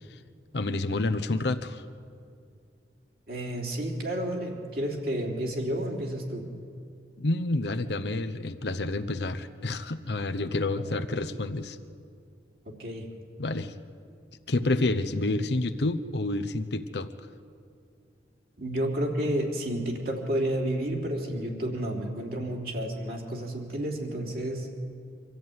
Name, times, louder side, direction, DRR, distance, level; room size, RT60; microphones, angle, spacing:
voice 1, 0.5-1.8 7.2-11.8 13.4-13.7 14.5-17.3, left 2 dB, 70° left, 9 dB, 0.9 m, -29 dB
voice 2, 3.3-6.5 10.7-10.8 12.7-13.1 18.6-24.7, right 1 dB, 55° right, 0 dB, 3.5 m, -31 dB
25.0 x 14.0 x 9.5 m, 2.4 s
head